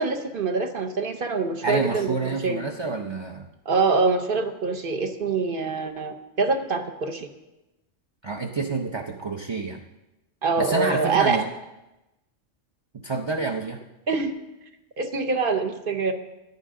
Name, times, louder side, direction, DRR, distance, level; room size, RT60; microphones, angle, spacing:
voice 1, 0.0-2.6 3.7-7.3 10.4-11.4 14.1-14.3 15.0-16.1, right 4 dB, 55° right, 6 dB, 1.0 m, -25 dB
voice 2, 1.6-3.5 8.2-9.8 10.6-11.5 13.0-13.8, right 4 dB, 35° right, 2 dB, 0.5 m, -28 dB
14.5 x 10.0 x 3.7 m, 0.99 s
omnidirectional pair, 1.2 m